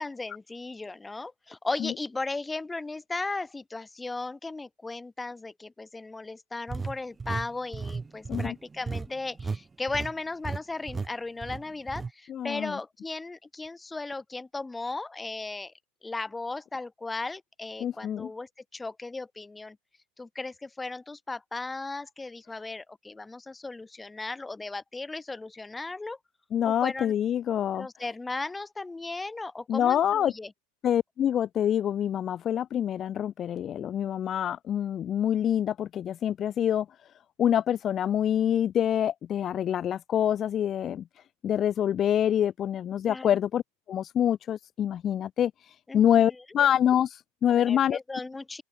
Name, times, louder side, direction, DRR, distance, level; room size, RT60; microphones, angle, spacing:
voice 1, 0.0-15.7 16.0-19.8 20.2-26.2 26.6-27.1 27.7-30.5 43.1-43.3 45.9-46.3 47.5-48.6, left 3 dB, 10° left, 1.4 m, -36 dB
sound 1, 6.7-9.6 9.9-10.1 10.4-10.6 10.9-11.1 11.4-12.1, right 4 dB, 15° right, 4.2 m, -34 dB
voice 2, 12.3-12.8 17.8-18.3 26.5-27.9 29.7-30.3 30.8-36.9 37.4-41.0 41.4-43.6 43.9-48.0, left 10 dB, 30° left, 0.6 m, -26 dB
open air
supercardioid pair, 120°, 0 cm